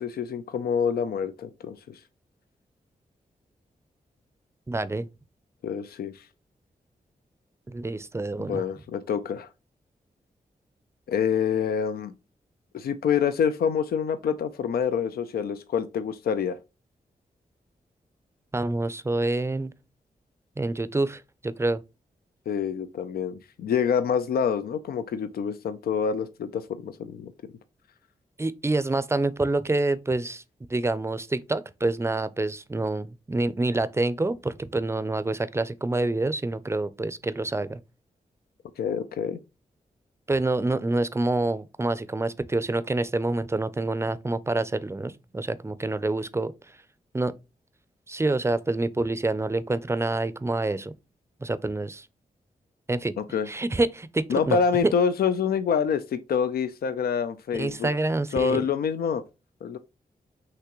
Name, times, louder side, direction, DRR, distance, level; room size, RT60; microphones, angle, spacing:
voice 1, 0.0-2.0 5.6-6.2 8.5-9.5 11.1-12.1 12.7-16.6 22.5-27.3 38.8-39.4 53.3-53.5 54.3-57.9 58.3-59.2 59.6-59.8, left 7 dB, 85° left, 0.4 m, -26 dB
voice 2, 4.7-5.1 7.7-8.6 18.5-19.7 20.6-21.8 28.4-30.4 30.7-37.8 40.3-46.5 47.1-47.3 48.1-50.9 51.4-52.1 52.9-53.2 53.5-54.9 57.5-58.6, right 2 dB, 15° right, 0.4 m, -27 dB
5.8 x 3.0 x 3.0 m
cardioid pair, 75°, 15 cm